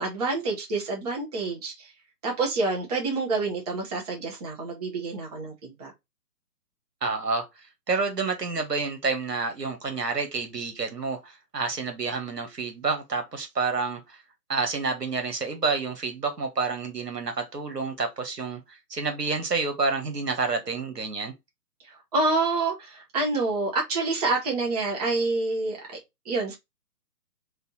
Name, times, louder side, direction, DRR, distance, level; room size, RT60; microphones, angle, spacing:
voice 1, 0.0-1.9 2.2-5.9 21.8-26.0 26.2-26.5, right 3 dB, 25° right, 0.9 m, -27 dB
voice 2, 7.0-7.5 7.9-14.0 14.5-21.3, right 4 dB, 80° right, 1.5 m, -29 dB
3.5 x 2.7 x 4.1 m
figure-of-eight pair, 145°, 47 cm